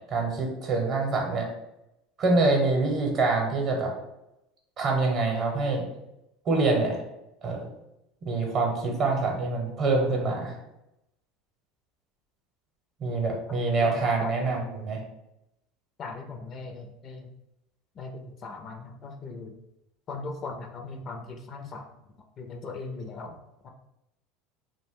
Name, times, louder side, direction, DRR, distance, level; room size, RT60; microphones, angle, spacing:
voice 1, 0.1-1.5 2.2-3.9 4.8-5.8 6.5-7.0 7.4-7.6 8.2-10.5 13.0-15.0, right 3 dB, 50° right, 0 dB, 0.7 m, -25 dB
voice 2, 13.5-13.9 14.2-14.3 16.0-17.3 17.9-19.5 20.1-21.9 22.4-23.4 23.6-23.7, left 3 dB, 40° left, 4 dB, 0.4 m, -39 dB
2.4 x 2.1 x 3.5 m, 0.89 s
supercardioid pair, 100°, 0 cm